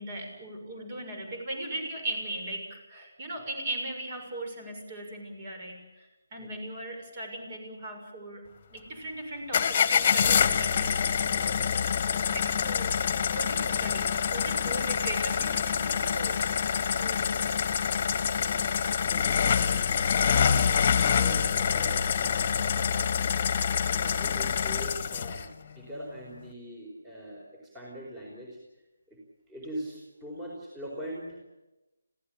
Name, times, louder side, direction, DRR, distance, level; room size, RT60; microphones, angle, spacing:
voice 1, 0.0-11.3 12.0-12.9 13.3-16.5 16.9-17.4, right 1 dB, 35° right, 4 dB, 6.7 m, -38 dB
sound 1, 9.5-25.5, left 7 dB, 35° left, 1.6 m, -26 dB
voice 2, 19.0-20.4 20.7-22.7 23.5-28.6 29.1-29.2 29.5-31.4, right 1 dB, 10° right, -2 dB, 4.7 m, -43 dB
27.0 x 16.0 x 8.9 m, 1.0 s
figure-of-eight pair, 150°, 0 cm